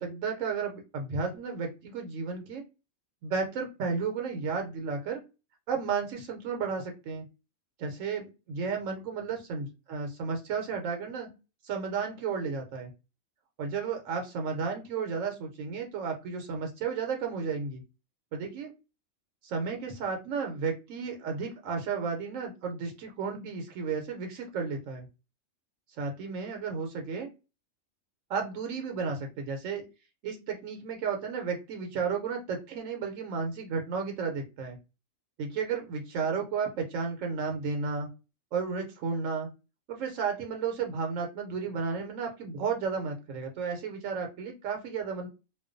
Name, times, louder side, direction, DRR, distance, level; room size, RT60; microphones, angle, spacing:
voice 1, 0.0-2.6 3.2-5.2 5.7-7.2 7.8-11.3 11.6-12.9 13.6-17.8 18.3-18.7 19.4-25.1 26.0-27.3 28.3-29.8 30.2-34.8 35.4-38.1 38.5-39.5 39.9-45.3, right 5 dB, 75° right, 4 dB, 0.9 m, -33 dB
2.3 x 2.2 x 2.4 m, 0.28 s
omnidirectional pair, 1.4 m